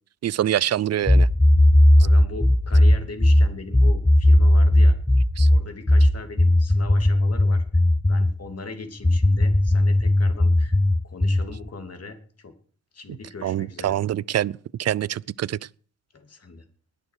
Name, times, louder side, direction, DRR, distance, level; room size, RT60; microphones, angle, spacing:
voice 1, 0.2-1.3 5.4-5.5 13.4-14.5 14.8-15.6, right 11 dB, 50° right, 0.5 m, -25 dB
sound 1, 1.1-8.4 9.0-11.5, left 1 dB, 10° left, 0.6 m, -17 dB
voice 2, 2.0-5.0 5.5-7.6 8.1-10.8 11.0-12.5 12.9-14.0 16.1-16.6, left 3 dB, 45° left, 2.9 m, -39 dB
20.5 x 6.9 x 4.8 m
supercardioid pair, 45°, 35 cm